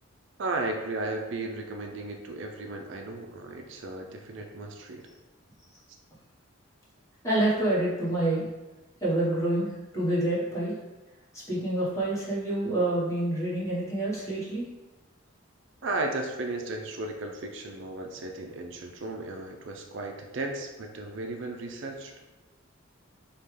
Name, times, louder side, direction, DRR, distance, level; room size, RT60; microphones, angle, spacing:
voice 1, 0.4-5.0 15.8-22.1, right 2 dB, 65° right, 3 dB, 0.5 m, -35 dB
voice 2, 7.2-8.5 9.0-10.7 11.5-14.7, right 1 dB, 15° left, -7 dB, 1.2 m, -27 dB
5.4 x 2.3 x 3.2 m, 1.1 s
head